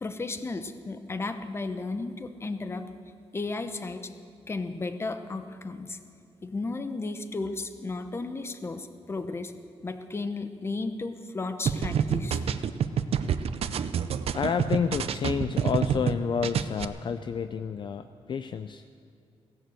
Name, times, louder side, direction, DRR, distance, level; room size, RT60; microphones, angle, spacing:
voice 1, 0.0-2.9 3.3-4.1 4.5-6.0 6.4-9.5 9.8-12.4, left 3 dB, 25° left, 9 dB, 0.9 m, -34 dB
sound 1, 11.7-16.1 16.4-16.8, right 8 dB, 70° right, 0.6 m, -27 dB
voice 2, 14.3-18.8, left 7 dB, 50° left, 10 dB, 0.4 m, -29 dB
16.5 x 11.0 x 7.8 m, 2.5 s
wide cardioid pair, 150°, 11 cm